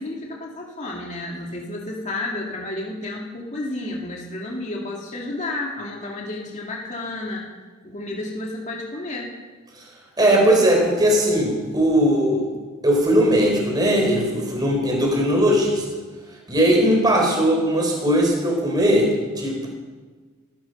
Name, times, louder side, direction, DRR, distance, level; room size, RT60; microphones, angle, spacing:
voice 1, 0.0-7.5 7.8-9.3, left 2 dB, 35° left, -2 dB, 2.4 m, -31 dB
voice 2, 10.2-12.5 12.8-15.8 16.5-19.7, equal, 20° right, 0 dB, 3.9 m, -19 dB
18.0 x 14.5 x 5.4 m, 1.4 s
head